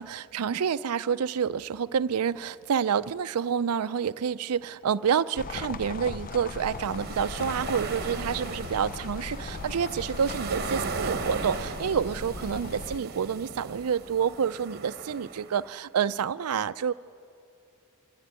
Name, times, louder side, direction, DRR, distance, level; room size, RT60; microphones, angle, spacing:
voice 1, 0.0-16.9, right 7 dB, 80° right, 13 dB, 0.4 m, -28 dB
sound 1, 5.3-13.0, left 4 dB, 40° left, 0.4 m, -38 dB
sound 2, 6.5-15.7, right 4 dB, 45° right, 1.2 m, -37 dB
25.5 x 14.5 x 9.6 m, 2.4 s
head